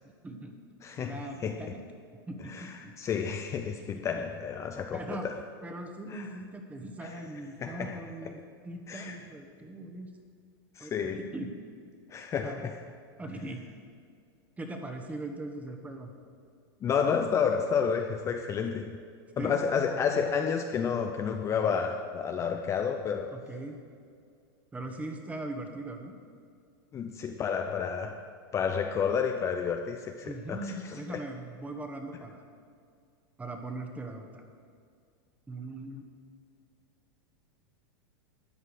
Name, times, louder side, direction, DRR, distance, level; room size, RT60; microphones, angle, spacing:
voice 1, 0.2-0.5 1.0-1.8 2.3-2.9 3.7-3.9 4.9-5.3 5.6-10.1 10.8-11.5 12.4-12.7 13.2-13.6 14.6-16.1 19.4-19.5 23.3-23.8 24.7-26.1 30.2-32.4 33.4-34.4 35.5-36.0, right 2 dB, 10° right, 4 dB, 1.2 m, -40 dB
voice 2, 0.8-1.6 2.4-5.4 6.1-6.3 7.0-7.2 7.6-8.0 8.9-9.2 10.8-11.3 12.1-12.7 16.8-19.0 19.4-23.4 26.9-28.3 28.5-31.2, left 6 dB, 25° left, 5 dB, 0.5 m, -30 dB
12.5 x 8.7 x 5.0 m, 2.3 s
supercardioid pair, 130°, 13 cm